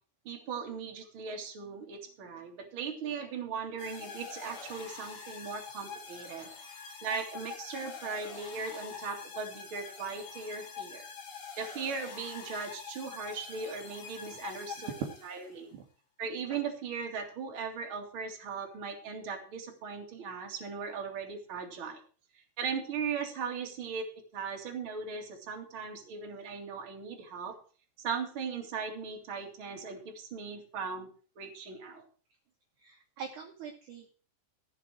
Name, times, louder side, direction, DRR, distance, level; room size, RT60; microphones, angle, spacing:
voice 1, 0.2-6.5 7.0-11.1 11.6-15.7 16.2-22.0 22.6-24.1 24.3-27.6 28.0-31.1 31.4-32.0, right 5 dB, 35° right, 2 dB, 2.5 m, -38 dB
sound 1, 3.8-15.6, left 6 dB, 50° left, 1.8 m, -45 dB
voice 2, 32.8-34.1, right 6 dB, 60° right, 2 dB, 2.3 m, -44 dB
14.0 x 7.4 x 6.4 m, 0.41 s
omnidirectional pair, 4.9 m